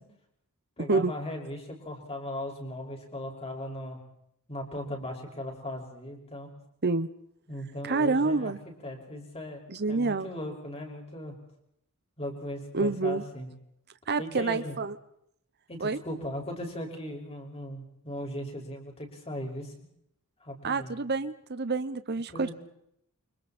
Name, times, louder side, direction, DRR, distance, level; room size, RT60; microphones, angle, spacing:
voice 1, 0.8-4.0 4.5-6.5 7.5-11.4 12.2-13.5 14.2-14.8 15.7-19.7 20.4-20.9 22.3-22.5, left 1 dB, 30° left, 1 dB, 6.0 m, -38 dB
voice 2, 7.8-8.6 9.7-10.3 12.7-13.2 14.1-15.0 15.8-16.0 20.6-22.5, right 3 dB, 50° right, 12 dB, 1.0 m, -27 dB
30.0 x 25.5 x 4.4 m, 0.74 s
head